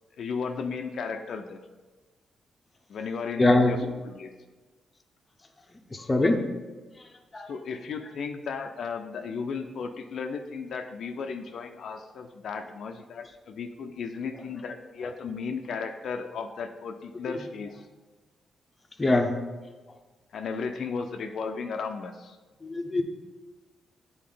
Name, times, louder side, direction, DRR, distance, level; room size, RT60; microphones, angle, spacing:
voice 1, 0.2-1.6 2.9-3.8 4.0-4.3 7.5-17.8 20.3-22.4, left 5 dB, 65° left, 5 dB, 0.4 m, -35 dB
voice 2, 3.4-3.8 5.9-6.4 7.3-7.5 19.0-19.3 22.6-23.0, left 2 dB, 20° left, 4 dB, 0.7 m, -22 dB
8.5 x 4.2 x 3.8 m, 1.3 s
cardioid pair, 115°, 0 cm